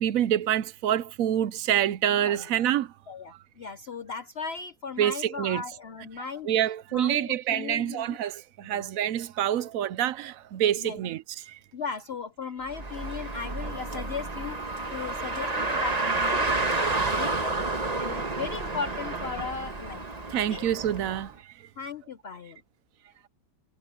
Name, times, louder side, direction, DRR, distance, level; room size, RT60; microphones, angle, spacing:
voice 1, 0.0-2.9 3.3-3.4 5.0-5.6 6.4-11.6 14.9-15.1 20.3-21.5, right 11 dB, 75° right, 1.0 m, -27 dB
voice 2, 3.1-6.5 6.9-8.2 8.6-8.9 9.6-9.7 10.8-11.0 11.7-20.0 20.3-20.6 21.8-22.6, left 5 dB, 50° left, 0.9 m, -37 dB
Car, 12.7-21.2, right 3 dB, 25° right, 1.6 m, -30 dB
sound 1, 13.7-19.0, right 1 dB, 5° right, 4.5 m, -54 dB
omnidirectional pair, 1.5 m